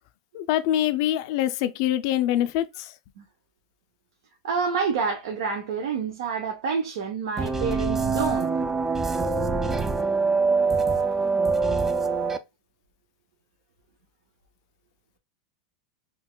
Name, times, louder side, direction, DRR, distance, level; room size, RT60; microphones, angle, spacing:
voice 1, 0.3-2.9, left 12 dB, 60° left, 0.4 m, -24 dB
voice 2, 4.4-8.5, right 5 dB, 75° right, 0.6 m, -28 dB
sound 1, 7.4-12.4, right 4 dB, 15° right, 0.3 m, -24 dB
3.8 x 2.3 x 2.2 m
hypercardioid pair, 115°, 3 cm